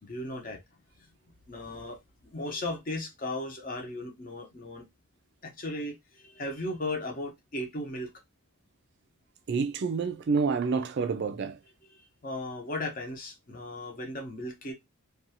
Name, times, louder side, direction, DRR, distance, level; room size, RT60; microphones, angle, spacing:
voice 1, 0.0-0.6 1.0-1.1 1.5-4.9 5.4-8.1 11.9-14.7, left 1 dB, 40° left, 0.7 m, -36 dB
voice 2, 9.5-11.6, right 5 dB, 50° right, 0.3 m, -28 dB
2.6 x 2.3 x 2.7 m
head